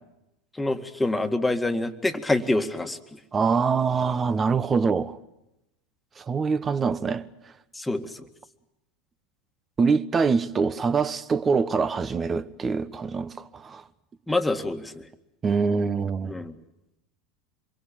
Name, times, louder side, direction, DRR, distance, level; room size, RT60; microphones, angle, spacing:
voice 1, 0.6-3.2 7.8-8.3 14.3-15.0 16.3-16.5, left 2 dB, 10° left, 2.0 m, -26 dB
voice 2, 3.3-5.2 6.2-7.3 9.8-13.8 15.4-16.4, right 5 dB, 25° right, 1.3 m, -24 dB
26.5 x 23.0 x 9.0 m
hypercardioid pair, 85°, 0 cm